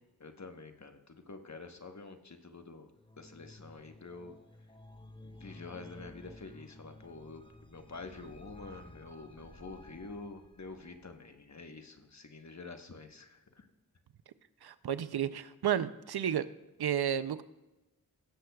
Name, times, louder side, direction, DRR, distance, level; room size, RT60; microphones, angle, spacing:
voice 1, 0.2-2.9 3.2-4.3 5.2-13.7, left 3 dB, 45° left, 6 dB, 1.2 m, -48 dB
sound 1, 3.0-11.3, left 1 dB, 15° left, 0.9 m, -54 dB
voice 2, 14.6-16.4 16.8-17.4, right 9 dB, 80° right, 14 dB, 0.6 m, -32 dB
17.0 x 7.7 x 2.3 m, 0.98 s
cardioid pair, 40°, 38 cm